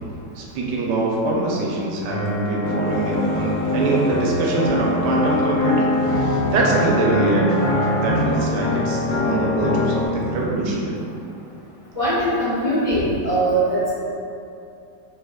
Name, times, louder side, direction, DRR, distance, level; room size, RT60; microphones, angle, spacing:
voice 1, 0.4-7.6 8.0-11.0, right 2 dB, 75° right, -3 dB, 1.0 m, -23 dB
sound 1, 2.1-10.1, left 1 dB, 70° left, 1.1 m, -23 dB
sound 2, 2.8-9.2, left 1 dB, 85° left, 0.7 m, -34 dB
voice 2, 11.9-13.9, right 1 dB, 35° right, -15 dB, 0.7 m, -21 dB
3.4 x 3.1 x 2.2 m, 2.6 s
omnidirectional pair, 2.1 m